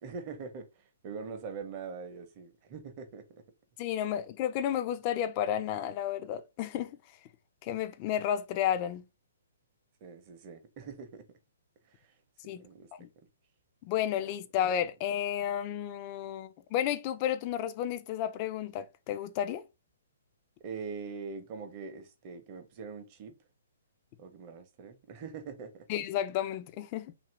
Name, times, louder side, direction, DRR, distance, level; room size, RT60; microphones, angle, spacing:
voice 1, 0.0-3.4 10.0-11.2 11.9-12.1 12.4-12.9 20.6-23.3 24.2-25.8, right 5 dB, 35° right, 0.7 m, -43 dB
voice 2, 3.8-7.0 7.6-9.0 12.5-12.6 13.0-13.1 13.8-19.6 25.9-27.1, left 10 dB, 35° left, 0.4 m, -32 dB
2.7 x 2.5 x 3.2 m
hypercardioid pair, 135°, 0 cm